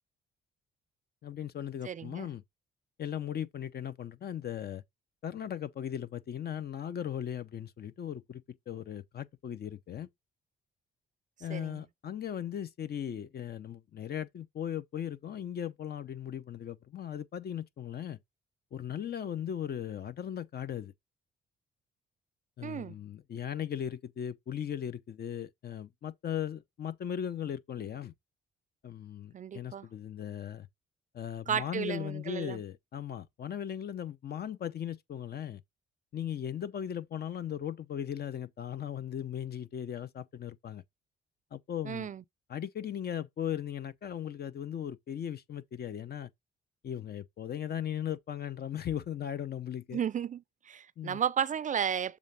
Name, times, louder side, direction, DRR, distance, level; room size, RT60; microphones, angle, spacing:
voice 1, 1.2-2.4 3.0-4.8 5.2-10.1 11.4-18.2 18.7-20.9 22.6-28.1 28.8-30.7 31.1-35.6 36.1-40.8 41.5-42.1 42.5-46.3 46.8-50.0 51.0-51.2, left 9 dB, 50° left, 0.8 m, -38 dB
voice 2, 1.8-2.3 11.5-11.8 22.6-23.0 29.3-29.9 31.5-32.6 41.8-42.2 49.9-52.2, right 8 dB, 40° right, 0.4 m, -33 dB
7.1 x 3.5 x 5.3 m
cardioid pair, 90°, 20 cm